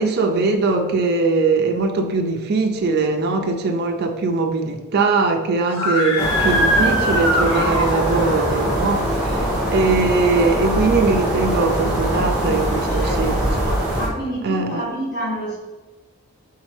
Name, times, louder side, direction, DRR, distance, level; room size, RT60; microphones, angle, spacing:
voice 1, 0.0-13.8 14.4-14.8, right 3 dB, 45° right, 4 dB, 0.4 m, -21 dB
Screaming, 5.7-8.5, equal, 70° left, 1.2 m, -22 dB
sound 1, 6.2-14.1, right 1 dB, 5° right, 1.2 m, -22 dB
voice 2, 12.9-13.6 14.0-15.6, right 1 dB, 50° left, -4 dB, 1.5 m, -28 dB
4.1 x 3.7 x 3.1 m, 1.3 s
head